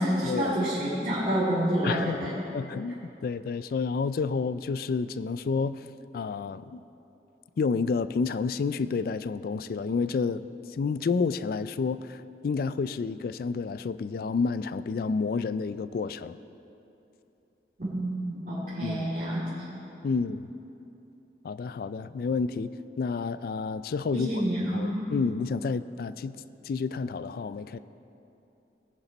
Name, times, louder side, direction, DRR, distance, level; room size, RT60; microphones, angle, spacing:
voice 1, 0.0-2.4 17.8-19.5 24.1-25.1, equal, 45° right, -11 dB, 2.4 m, -28 dB
voice 2, 1.8-2.2 2.5-5.8 6.1-6.8 7.6-10.5 10.7-16.4 18.8-19.1 20.0-20.5 21.4-24.4 24.7-26.4 26.6-27.8, left 4 dB, 55° left, 15 dB, 0.3 m, -30 dB
19.0 x 7.0 x 4.0 m, 2.9 s
head